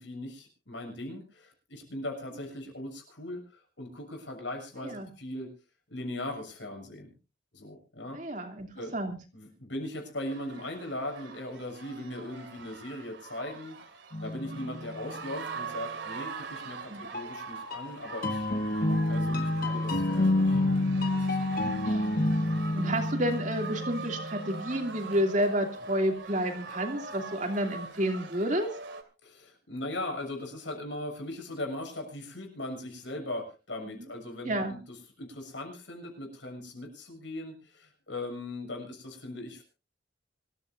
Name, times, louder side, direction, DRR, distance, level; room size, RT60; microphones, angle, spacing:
voice 1, 0.0-5.5 5.9-7.1 7.5-8.2 8.7-8.9 9.3-13.8 14.2-18.4 19.1-20.6 21.1-21.7 29.2-39.6, left 1 dB, 75° left, 3 dB, 6.9 m, -39 dB
voice 2, 8.1-8.7 8.9-9.2 14.6-14.7 16.9-17.0 21.6-22.0 22.7-28.7 33.9-34.0 34.4-34.7, equal, 40° right, 4 dB, 2.7 m, -30 dB
sound 1, 10.2-29.0, right 4 dB, 70° right, 2.6 m, -42 dB
sound 2, 14.1-15.3 17.1-24.8, left 1 dB, 50° left, 1.6 m, -29 dB
25.5 x 14.5 x 2.6 m, 0.32 s
head